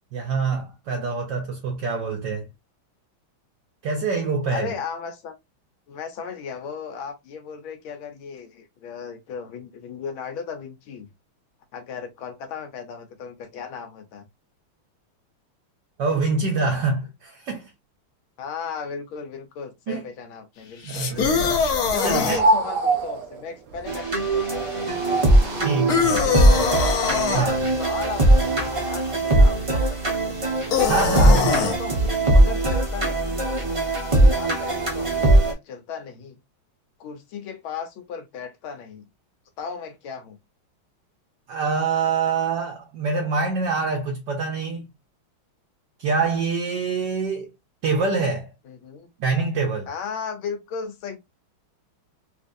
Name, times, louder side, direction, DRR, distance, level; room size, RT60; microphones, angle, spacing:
voice 1, 0.1-2.5 3.8-4.7 16.0-17.7 19.9-20.1 20.8-21.5 22.0-22.4 25.6-26.7 27.3-27.7 30.8-31.5 41.5-44.9 46.0-47.5 47.8-48.5 49.2-49.9, right 4 dB, 65° right, 1.2 m, -25 dB
voice 2, 4.5-5.3 5.9-11.1 11.7-14.2 18.4-21.2 21.9-25.0 25.3-25.7 26.6-26.9 27.2-30.5 31.1-33.4 34.3-36.4 37.0-39.0 39.6-40.4 48.7-49.1 49.9-51.2, left 6 dB, 75° left, 1.7 m, -35 dB
Male Aggressive Growls, 20.8-22.4 25.9-27.4 30.7-31.8, left 5 dB, 55° left, 1.2 m, -22 dB
sound 1, 22.2-29.1, right 2 dB, 90° right, 0.7 m, -28 dB
sound 2, 23.9-35.5, right 1 dB, 30° right, 0.6 m, -20 dB
4.3 x 2.6 x 2.5 m
omnidirectional pair, 2.3 m